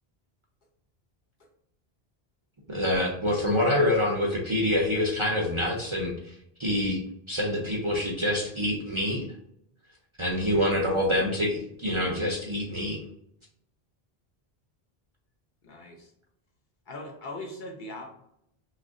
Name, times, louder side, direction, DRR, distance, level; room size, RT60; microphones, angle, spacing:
voice 1, 2.7-6.3 6.6-7.0 7.3-9.2 10.2-13.0, left 1 dB, 35° right, -2 dB, 0.5 m, -26 dB
voice 2, 10.4-11.2 15.6-16.1 16.9-18.1, left 1 dB, 55° left, 1 dB, 0.7 m, -40 dB
3.0 x 2.4 x 3.6 m, 0.75 s
omnidirectional pair, 1.0 m